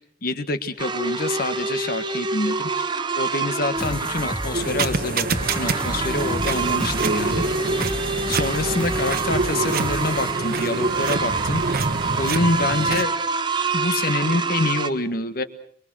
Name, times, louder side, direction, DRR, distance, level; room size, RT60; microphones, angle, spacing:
voice 1, 0.2-2.9 3.2-7.4 8.3-11.8 12.2-13.1 13.7-15.4, left 2 dB, 55° left, 10 dB, 1.6 m, -26 dB
sound 1, 0.8-14.9, right 4 dB, 25° right, 1.1 m, -27 dB
sound 2, 3.8-10.3, equal, 5° left, 1.5 m, -31 dB
sound 3, 4.5-13.1, right 3 dB, 55° right, 1.2 m, -27 dB
24.0 x 23.5 x 6.4 m, 0.63 s
head